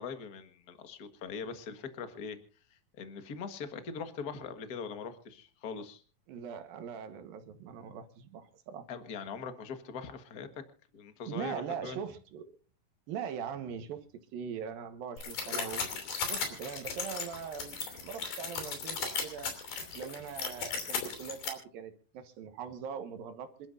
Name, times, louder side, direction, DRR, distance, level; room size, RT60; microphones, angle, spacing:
voice 1, 0.0-2.4 2.7-6.0 8.9-10.6 10.9-12.0, left 5 dB, 50° left, 8 dB, 1.1 m, -41 dB
voice 2, 6.3-8.9 11.3-12.5 13.1-14.1 14.3-15.8 16.3-19.6 19.9-23.7, right 7 dB, 80° right, 8 dB, 3.1 m, -41 dB
sound 1, 15.2-21.5, left 5 dB, 80° left, 4.8 m, -36 dB
27.0 x 12.0 x 2.6 m, 0.39 s
omnidirectional pair, 4.1 m